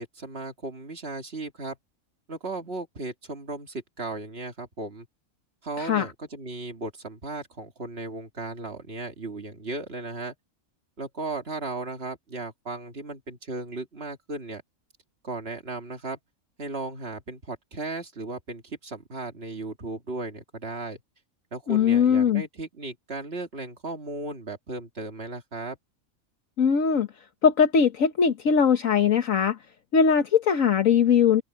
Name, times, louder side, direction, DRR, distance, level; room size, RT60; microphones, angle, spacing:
voice 1, 0.0-1.8 2.3-5.1 5.6-10.3 11.0-14.6 15.2-16.2 16.6-21.0 21.5-25.8, right 3 dB, 45° right, 2.4 m, -36 dB
voice 2, 21.7-22.4 26.6-27.1 27.4-29.6 29.9-31.4, left 7 dB, 70° left, 1.6 m, -20 dB
open air
omnidirectional pair, 1.4 m